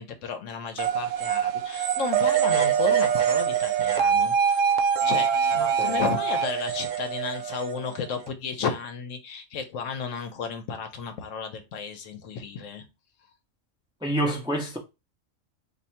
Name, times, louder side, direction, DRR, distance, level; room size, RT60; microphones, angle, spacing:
voice 1, 0.0-5.3 5.5-12.8, left 6 dB, 80° left, 1.1 m, -33 dB
sound 1, 0.8-8.3, right 8 dB, 85° right, 1.0 m, -24 dB
voice 2, 5.8-6.2 14.0-14.8, right 1 dB, 5° right, 0.5 m, -28 dB
2.7 x 2.6 x 4.2 m
omnidirectional pair, 1.3 m